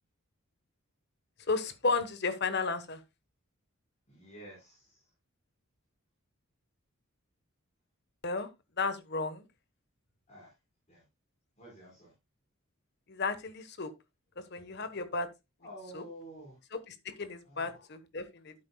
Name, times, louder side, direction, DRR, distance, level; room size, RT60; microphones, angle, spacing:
voice 1, 1.5-3.0 8.2-8.5 8.8-9.4 13.1-13.9 14.5-15.3 15.9-16.0 16.7-18.5, left 4 dB, 50° left, 1.2 m, -33 dB
voice 2, 4.1-5.0 10.3-10.5 10.9-11.0 11.6-12.1 15.6-16.5 17.4-17.6, right 1 dB, 30° left, 4.5 m, -49 dB
12.0 x 8.7 x 2.3 m
head